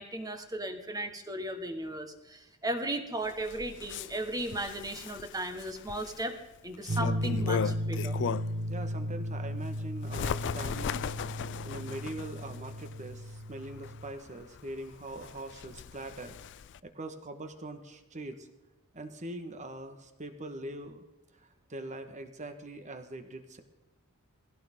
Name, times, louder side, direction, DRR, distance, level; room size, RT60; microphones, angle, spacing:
voice 1, 0.0-6.4 6.6-8.2, right 1 dB, 15° right, 6 dB, 1.5 m, -36 dB
Bird, 3.2-8.7 9.1-16.8, left 7 dB, 55° left, 0.4 m, -38 dB
sound 1, 6.9-14.1, equal, 65° right, 1.6 m, -35 dB
voice 2, 8.7-16.4 16.8-18.5 18.9-21.0 21.4-23.6, right 2 dB, 35° right, 7 dB, 1.6 m, -42 dB
20.0 x 16.0 x 3.8 m, 1.0 s
head